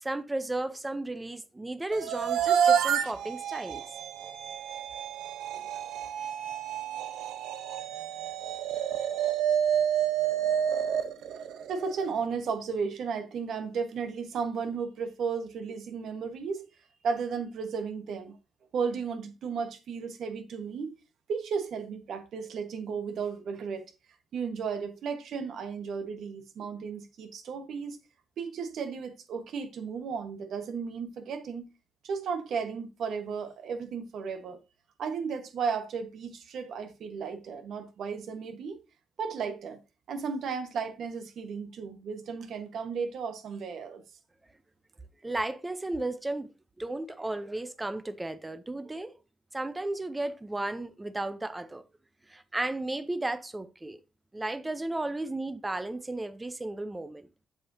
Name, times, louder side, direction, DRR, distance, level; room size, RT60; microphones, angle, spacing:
voice 1, 0.0-3.8 5.5-5.7 45.2-46.5 46.8-49.2 49.5-51.8 52.3-54.0 54.3-57.3, right 2 dB, 15° right, 0.6 m, -34 dB
sound 1, 1.9-12.1, right 9 dB, 85° right, 0.7 m, -29 dB
voice 2, 11.7-16.7 17.0-18.4 18.7-20.9 21.3-23.8 24.3-28.0 28.4-31.7 32.0-34.6 35.0-38.8 39.2-39.8 40.1-44.0, right 5 dB, 65° right, 1.3 m, -34 dB
7.5 x 6.9 x 2.7 m
cardioid pair, 120°, 0 cm